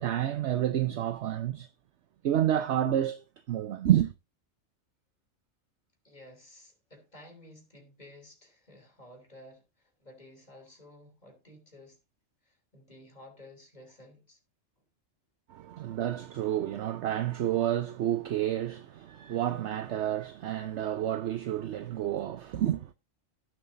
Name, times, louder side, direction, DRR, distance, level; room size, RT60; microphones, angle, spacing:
voice 1, 0.0-1.7 2.2-4.1 15.5-22.9, right 11 dB, 65° right, 0.9 m, -29 dB
voice 2, 6.0-12.0 12.4-14.4, left 1 dB, 30° left, 3.3 m, -53 dB
17.0 x 7.2 x 2.6 m
omnidirectional pair, 1.4 m